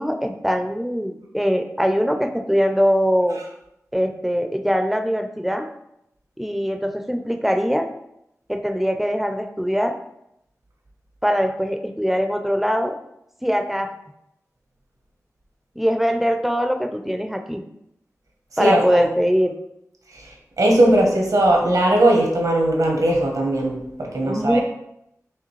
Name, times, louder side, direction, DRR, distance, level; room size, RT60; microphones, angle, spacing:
voice 1, 0.0-3.4 3.9-5.7 6.4-7.9 8.5-10.0 11.2-12.9 13.4-13.9 15.8-17.6 18.6-19.5 24.2-24.6, equal, 5° right, 5 dB, 0.4 m, -22 dB
voice 2, 18.6-19.0 20.1-24.6, right 1 dB, 85° right, 0 dB, 1.1 m, -19 dB
4.9 x 3.1 x 3.1 m, 0.80 s
wide cardioid pair, 85°, 6 cm